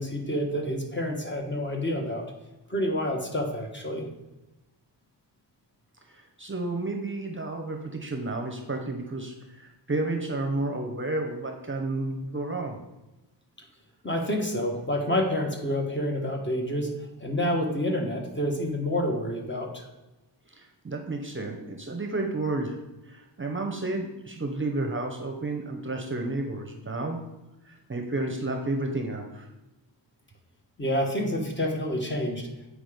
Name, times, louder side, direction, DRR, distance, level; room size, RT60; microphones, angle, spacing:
voice 1, 0.0-2.2 2.7-4.0 14.0-16.9 17.2-19.8 30.8-32.5, left 1 dB, 25° left, 1 dB, 1.4 m, -28 dB
voice 2, 6.1-12.8 20.5-22.8 23.0-27.2 27.6-29.5, right 2 dB, 30° right, 3 dB, 0.8 m, -31 dB
7.9 x 4.9 x 5.1 m, 1.0 s
wide cardioid pair, 140°, 44 cm